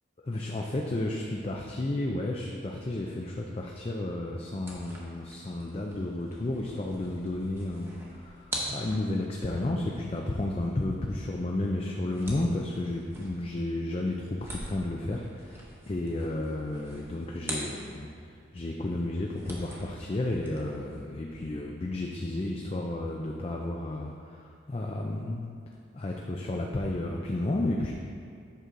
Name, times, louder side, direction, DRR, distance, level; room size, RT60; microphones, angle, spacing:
voice 1, 0.2-25.5 25.9-27.9, left 1 dB, 30° left, 0 dB, 0.4 m, -32 dB
sound 1, 4.6-18.3 18.6-21.0, equal, 15° right, 1.0 m, -44 dB
8.2 x 6.1 x 3.8 m, 2.3 s
head